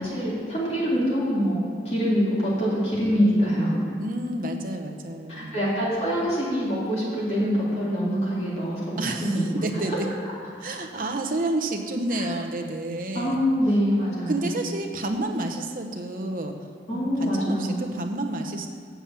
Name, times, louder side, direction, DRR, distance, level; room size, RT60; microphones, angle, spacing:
voice 1, 0.0-3.8 5.3-9.4 12.1-12.3 13.1-14.5 16.9-17.8, equal, 35° left, -7 dB, 2.8 m, -25 dB
voice 2, 4.0-5.8 9.0-9.3 9.6-10.1 10.6-13.5 14.3-18.7, right 2 dB, 50° right, 4 dB, 0.8 m, -30 dB
7.1 x 7.1 x 7.4 m, 2.1 s
head